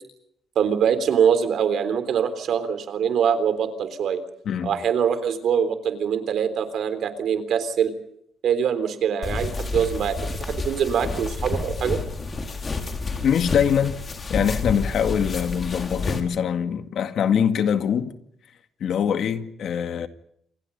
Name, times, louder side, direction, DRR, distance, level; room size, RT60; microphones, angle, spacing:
voice 1, 0.6-4.2 4.6-7.9 8.4-12.0, right 7 dB, 70° right, 3.6 m, -23 dB
sound 1, 9.2-16.2, left 3 dB, 35° left, 4.5 m, -29 dB
voice 2, 13.2-14.0 14.3-18.2 18.8-20.1, left 8 dB, 65° left, 2.1 m, -23 dB
28.5 x 24.5 x 5.5 m
cardioid pair, 90°, 0 cm